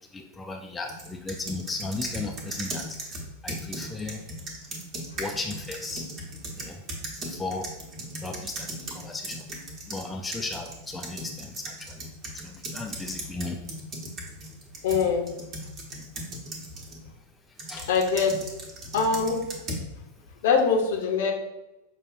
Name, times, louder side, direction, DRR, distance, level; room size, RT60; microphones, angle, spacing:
voice 1, 0.0-4.2 5.1-6.1 6.5-6.8 7.2-7.7 8.2-9.5 9.9-12.0 12.3-13.6 15.9-16.1 16.6-16.7 17.5-17.9, left 3 dB, 10° left, 3 dB, 0.3 m, -36 dB
sound 1, 0.9-10.0 10.3-17.0 17.6-19.9, right 1 dB, 30° right, 1.0 m, -37 dB
voice 2, 14.8-15.2 17.9-18.3 18.9-19.4 20.4-21.3, left 5 dB, 55° left, 2 dB, 0.7 m, -23 dB
5.6 x 2.2 x 2.6 m, 0.96 s
figure-of-eight pair, 90°, 0 cm